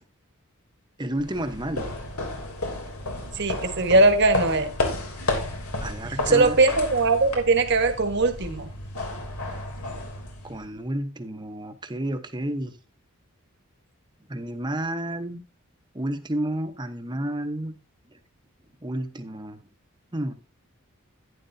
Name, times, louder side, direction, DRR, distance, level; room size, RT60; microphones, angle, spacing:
voice 1, 1.0-1.9 5.8-6.6 10.4-12.7 14.3-15.4 15.9-17.7 18.8-19.6 20.1-20.3, right 1 dB, 20° right, 1.0 m, -30 dB
sound 1, 1.1-10.8, left 2 dB, 85° left, 3.0 m, -32 dB
voice 2, 3.3-4.7 6.3-8.7, right 2 dB, 50° right, 1.4 m, -20 dB
11.5 x 10.0 x 2.7 m
head